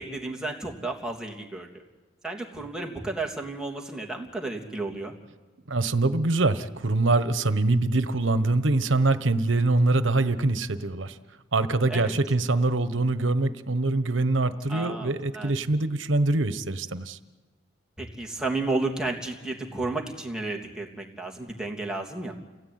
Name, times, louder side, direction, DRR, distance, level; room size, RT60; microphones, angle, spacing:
voice 1, 0.0-1.8 2.2-5.2 11.9-12.1 14.7-15.6 18.0-22.3, right 2 dB, 5° right, -1 dB, 3.0 m, -32 dB
voice 2, 5.7-11.2 11.5-17.2, right 2 dB, 80° right, 12 dB, 1.2 m, -24 dB
29.0 x 17.0 x 9.4 m, 1.3 s
head